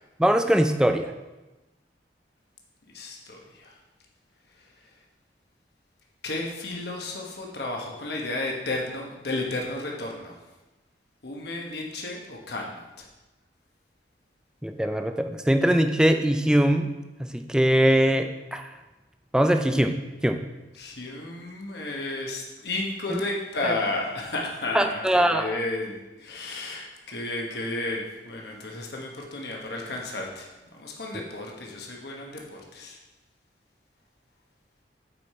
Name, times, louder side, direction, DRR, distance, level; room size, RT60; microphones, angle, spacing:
voice 1, 0.2-1.1 14.6-16.9 17.3-18.6 19.3-20.0 20.2-20.4 23.1-23.2 23.6-23.7 24.7-25.6, right 1 dB, 5° right, 6 dB, 0.4 m, -21 dB
voice 2, 2.9-3.8 6.2-10.3 11.2-13.1 20.8-33.0, left 2 dB, 60° left, -1 dB, 1.2 m, -33 dB
8.3 x 5.0 x 4.3 m, 1.1 s
head